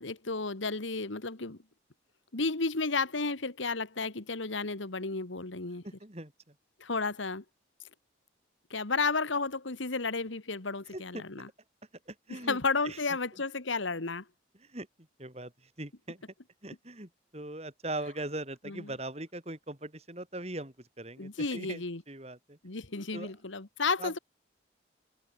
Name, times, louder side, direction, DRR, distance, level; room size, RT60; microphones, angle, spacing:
voice 1, 0.0-1.6 2.3-5.8 6.8-7.4 8.7-11.5 12.3-14.2 18.7-18.9 21.2-22.0 22.6-24.2, left 4 dB, 80° left, 1.8 m, -32 dB
voice 2, 5.8-6.3 10.9-11.2 12.1-12.6 12.8-13.0 14.6-14.9 15.2-16.2 16.6-22.6 23.1-23.3 24.0-24.1, right 1 dB, 35° right, 4.1 m, -40 dB
head